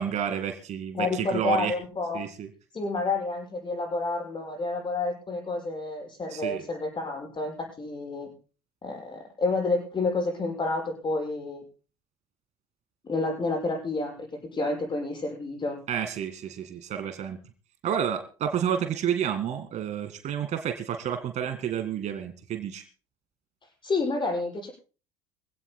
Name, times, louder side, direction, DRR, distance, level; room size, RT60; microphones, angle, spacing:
voice 1, 0.0-1.7 2.1-2.5 6.3-6.6 15.9-17.4 17.8-22.8, right 9 dB, 50° right, 8 dB, 1.9 m, -30 dB
voice 2, 0.9-2.2 2.7-8.3 8.8-11.6 13.1-15.8 23.8-24.7, left 3 dB, 30° left, 1 dB, 6.6 m, -29 dB
24.5 x 16.5 x 2.2 m, 0.35 s
hypercardioid pair, 60°, 16 cm